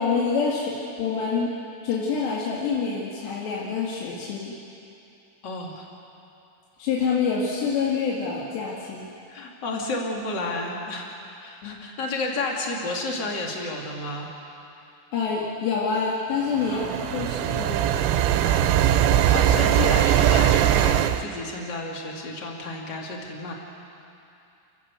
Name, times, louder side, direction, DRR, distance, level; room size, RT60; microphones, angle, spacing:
voice 1, 0.0-1.5 1.8-4.6 6.8-9.1 11.6-11.9 15.1-17.8, left 5 dB, 60° left, -5 dB, 3.9 m, -26 dB
voice 2, 5.4-5.9 9.3-11.1 11.4-14.3 16.6-17.0 18.4-18.9 19.3-23.5, left 2 dB, 30° left, -1 dB, 2.2 m, -31 dB
sound 1, 16.5-21.2, right 11 dB, 80° right, 2.8 m, -20 dB
29.5 x 15.5 x 8.2 m, 2.7 s
omnidirectional pair, 5.9 m